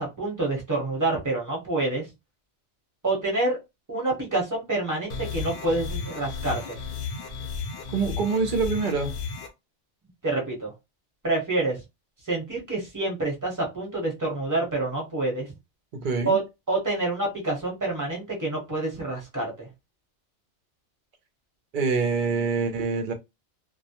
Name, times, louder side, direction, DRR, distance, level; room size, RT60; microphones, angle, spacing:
voice 1, 0.0-2.1 3.0-3.6 3.9-6.8 10.2-10.7 11.2-11.8 12.3-15.5 16.2-16.4 16.7-19.7, right 2 dB, 20° right, 0.8 m, -27 dB
sound 1, 5.1-9.5, left 5 dB, 55° left, 0.7 m, -34 dB
voice 2, 7.9-9.1 15.9-16.4 21.7-23.1, right 4 dB, 55° right, 0.6 m, -25 dB
2.2 x 2.1 x 2.8 m
omnidirectional pair, 1.2 m